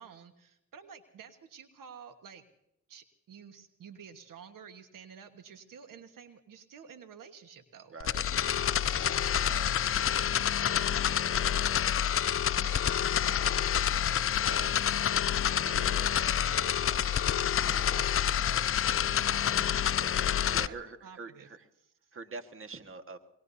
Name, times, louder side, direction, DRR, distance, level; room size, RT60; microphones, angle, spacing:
voice 1, 0.0-2.4 2.9-11.7 12.0-12.1 12.5-14.9 15.5-17.1 17.6-18.7 19.2-19.7 20.0-20.1 20.4-20.8 21.0-21.5 22.1-22.2, right 7 dB, 70° right, 8 dB, 1.5 m, -50 dB
voice 2, 7.9-8.3 9.4-9.7 14.4-14.7 15.7-16.1 19.5-19.9 20.5-21.7 22.1-23.2, right 4 dB, 40° right, 7 dB, 1.7 m, -45 dB
sound 1, 8.0-20.7, left 9 dB, 40° left, 0.5 m, -28 dB
24.0 x 22.0 x 2.8 m, 0.82 s
supercardioid pair, 60°, 34 cm